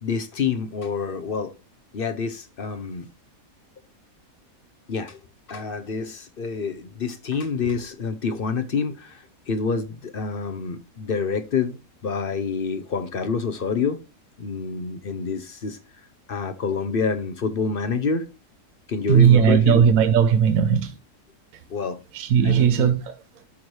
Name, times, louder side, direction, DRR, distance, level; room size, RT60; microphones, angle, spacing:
voice 1, 0.0-1.5 1.9-3.1 4.9-5.2 5.5-14.0 14.4-15.8 16.3-18.3 18.9-19.8 21.7-22.0 22.4-22.9, left 5 dB, 50° left, 0.8 m, -27 dB
voice 2, 19.1-21.0 21.5-21.6 22.1-23.4, right 8 dB, 75° right, 1.2 m, -18 dB
12.5 x 4.5 x 3.2 m
omnidirectional pair, 1.5 m